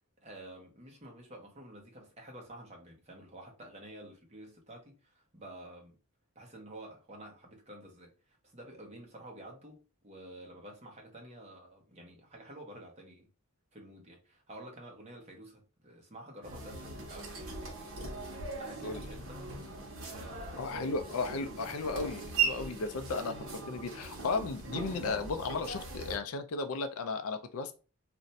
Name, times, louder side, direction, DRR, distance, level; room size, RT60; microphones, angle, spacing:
voice 1, 0.2-6.0 6.4-13.3 13.7-19.4 20.1-20.9, right 1 dB, 30° right, 0.7 m, -50 dB
sound 1, 16.4-26.2, right 4 dB, 65° right, 0.9 m, -39 dB
voice 2, 20.6-27.7, left 4 dB, 70° left, 0.4 m, -35 dB
2.5 x 2.1 x 4.0 m
head